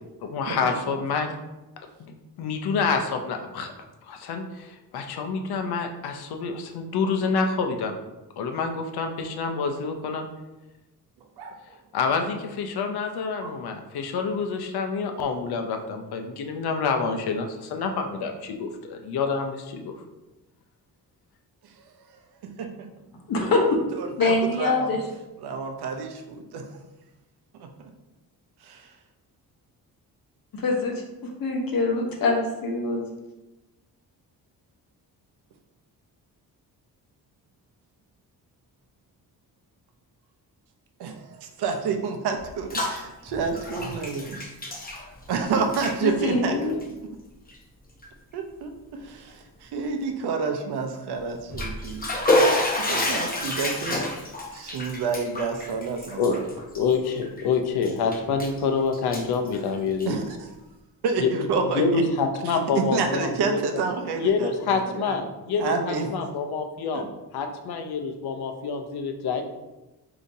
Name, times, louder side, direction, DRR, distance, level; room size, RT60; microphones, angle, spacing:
voice 1, 0.2-1.3 2.0-3.7 4.0-8.0 8.4-10.3 11.9-19.9 56.2-56.3 56.7-60.3 61.2-61.3 61.6-63.6 64.2-69.4, left 5 dB, 80° left, 5 dB, 0.6 m, -27 dB
voice 2, 22.4-22.9 23.4-23.5 24.0-24.9 25.4-26.7 27.6-27.7 28.6-28.9 41.0-44.5 45.3-46.6 48.3-52.1 52.9-54.0 54.5-56.2 60.1-60.5 61.0-62.0 62.5-64.5 64.9-65.2 65.6-66.1 66.9-67.0, right 5 dB, 90° right, 5 dB, 0.6 m, -29 dB
voice 3, 23.3-23.7 24.2-25.0 30.5-33.0 46.0-46.8, left 3 dB, 60° left, 0 dB, 1.0 m, -24 dB
Bathtub (filling or washing), 42.4-43.0 43.3-45.4 45.6-45.9 46.7-46.8 47.5-47.6 48.0-48.1 51.3-57.4 57.8-58.6 58.9-60.3, left 1 dB, 25° left, 0.8 m, -28 dB
5.0 x 2.8 x 2.7 m, 1.0 s
cardioid pair, 95°, 38 cm